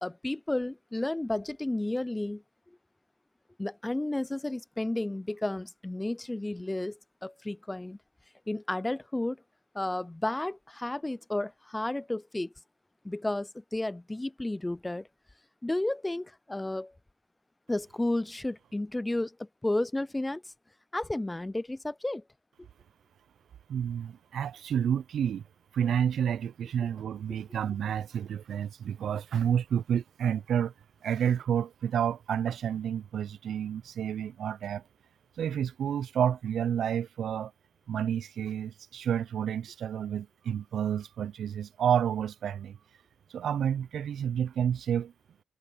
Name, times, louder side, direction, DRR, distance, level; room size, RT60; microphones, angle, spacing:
voice 1, 0.0-2.4 3.6-8.0 8.5-9.4 9.7-12.5 13.0-15.1 15.6-16.9 17.7-20.4 20.9-22.2, left 1 dB, 10° left, 0.4 m, -32 dB
voice 2, 23.7-25.4 25.7-30.7 31.0-34.8 35.4-37.5 37.9-42.8 43.3-45.1, right 8 dB, 65° right, 0.5 m, -30 dB
cardioid pair, 90°, 0 cm